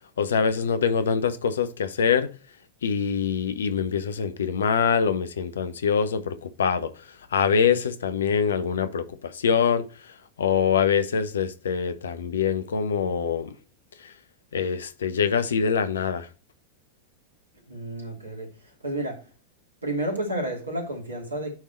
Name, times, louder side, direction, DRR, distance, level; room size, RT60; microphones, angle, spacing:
voice 1, 0.2-2.3 2.8-13.5 14.0-14.1 14.5-16.3, left 6 dB, 65° left, 0.8 m, -24 dB
voice 2, 17.7-19.2 19.8-21.5, right 1 dB, 80° right, 2.7 m, -31 dB
9.2 x 3.6 x 4.4 m
figure-of-eight pair, 90°, 0 cm